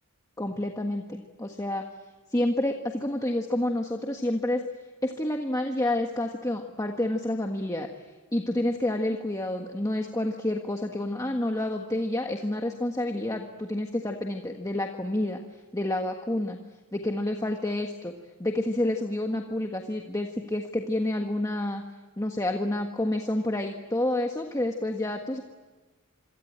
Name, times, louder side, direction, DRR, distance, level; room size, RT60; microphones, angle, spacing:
voice 1, 0.4-1.8 2.3-4.6 5.0-15.4 15.7-16.6 16.9-18.1 18.4-21.8 22.2-25.4, left 1 dB, 15° left, 3 dB, 1.5 m, -29 dB
27.0 x 23.5 x 8.8 m, 1.3 s
head